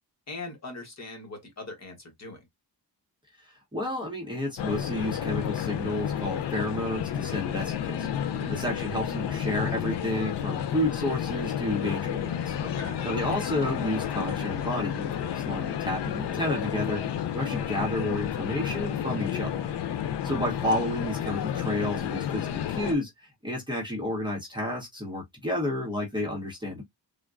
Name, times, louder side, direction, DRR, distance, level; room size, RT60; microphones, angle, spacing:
voice 1, 0.3-2.4 8.3-8.6 12.6-13.0, left 2 dB, 40° left, 1.1 m, -40 dB
voice 2, 3.4-8.1 8.5-12.6 13.0-19.5 20.2-26.8, left 1 dB, 10° right, 0.9 m, -31 dB
sound 1, 4.6-22.9, left 9 dB, 80° left, 0.6 m, -31 dB
3.5 x 2.2 x 2.4 m
wide cardioid pair, 165°, 41 cm